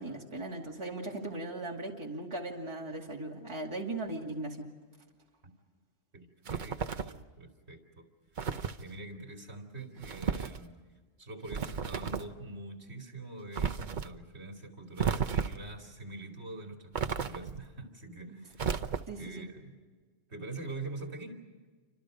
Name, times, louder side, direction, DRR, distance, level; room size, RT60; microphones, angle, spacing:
voice 1, 0.0-4.7 19.1-19.4, right 2 dB, 25° right, -1 dB, 2.4 m, -38 dB
voice 2, 6.1-8.1 8.8-10.8 11.2-19.8 20.3-21.4, right 2 dB, 60° right, 2 dB, 2.9 m, -44 dB
sound 1, 6.5-7.2 8.4-8.8 10.0-10.6 11.5-12.3 13.5-14.1 15.0-15.7 16.9-17.7 18.6-19.3, right 6 dB, 45° right, 0.9 m, -33 dB
28.5 x 25.5 x 5.1 m, 1.5 s
omnidirectional pair, 1.2 m